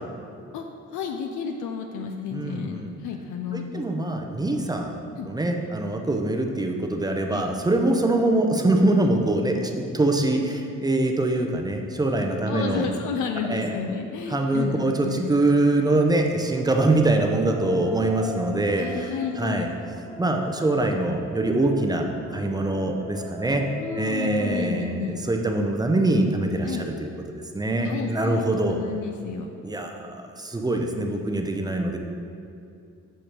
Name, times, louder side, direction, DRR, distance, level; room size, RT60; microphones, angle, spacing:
voice 1, 0.5-3.8 5.2-5.3 7.3-7.5 12.5-15.4 18.8-19.7 23.8-25.2 26.6-26.8 27.8-28.4 28.7-29.5, left 6 dB, 75° left, 3 dB, 0.5 m, -31 dB
voice 2, 2.3-2.9 3.5-12.9 13.5-13.8 14.3-19.1 19.4-19.7 20.2-23.7 24.0-27.1 27.5-28.8 29.6-32.0, right 2 dB, 15° right, 3 dB, 0.5 m, -24 dB
sound 1, 16.4-25.5, right 2 dB, 5° left, 1.2 m, -42 dB
6.4 x 5.0 x 2.9 m, 2.6 s
cardioid pair, 90°, 30 cm